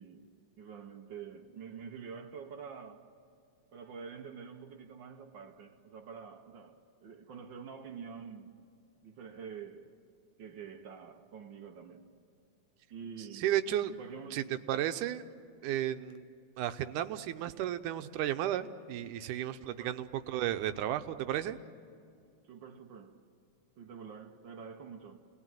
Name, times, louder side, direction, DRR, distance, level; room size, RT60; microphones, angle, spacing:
voice 1, 0.0-3.1 3.7-8.6 9.0-10.0 10.4-12.1 12.9-13.5 13.9-14.6 19.6-20.0 22.4-23.2 23.8-25.3, right 6 dB, 70° right, 1.1 m, -47 dB
voice 2, 13.3-13.9 14.3-15.2 15.6-16.3 16.6-21.6, right 12 dB, 85° right, 2.3 m, -33 dB
29.5 x 19.5 x 9.1 m
omnidirectional pair, 3.6 m